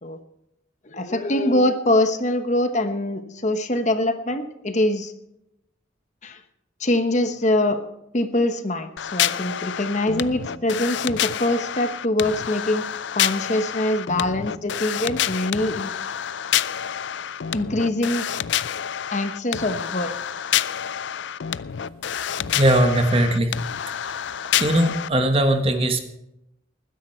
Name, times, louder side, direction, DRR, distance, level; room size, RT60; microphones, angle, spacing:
voice 1, 0.8-5.1 6.2-6.4 6.8-7.8 8.1-12.9 13.1-15.9 17.5-18.2 19.1-20.2, left 1 dB, 40° left, 8 dB, 1.1 m, -23 dB
sound 1, 9.0-25.1, left 10 dB, 70° left, 0.4 m, -28 dB
voice 2, 22.5-23.6 24.0-24.2 24.6-26.0, right 1 dB, 30° right, 6 dB, 1.4 m, -20 dB
20.0 x 10.5 x 4.4 m, 0.84 s
head